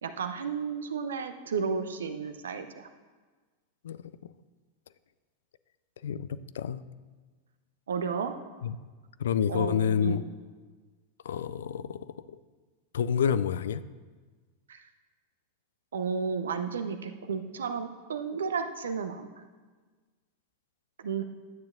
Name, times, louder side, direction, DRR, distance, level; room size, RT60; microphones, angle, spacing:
voice 1, 0.0-2.9 7.9-8.4 9.5-10.2 14.7-14.8 15.9-19.3 21.0-21.2, right 6 dB, 65° right, 9 dB, 0.6 m, -32 dB
voice 2, 6.0-6.8 8.6-8.8 9.2-10.2 11.2-12.1 12.9-13.8, left 8 dB, 60° left, 15 dB, 0.3 m, -28 dB
12.5 x 8.7 x 2.5 m, 1.4 s
figure-of-eight pair, 90°, 0 cm